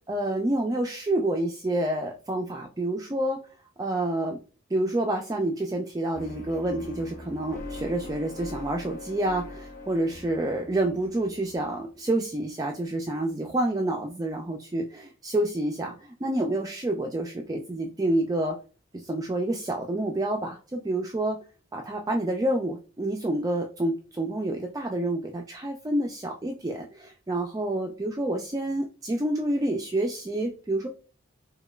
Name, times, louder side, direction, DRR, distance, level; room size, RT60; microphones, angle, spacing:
voice 1, 0.1-3.4 3.8-4.4 4.7-18.6 18.9-21.4 21.7-30.9, right 1 dB, 20° right, 2 dB, 0.3 m, -28 dB
sound 1, 6.1-12.2, left 2 dB, 40° left, 0.9 m, -42 dB
5.0 x 2.2 x 2.3 m, 0.34 s
head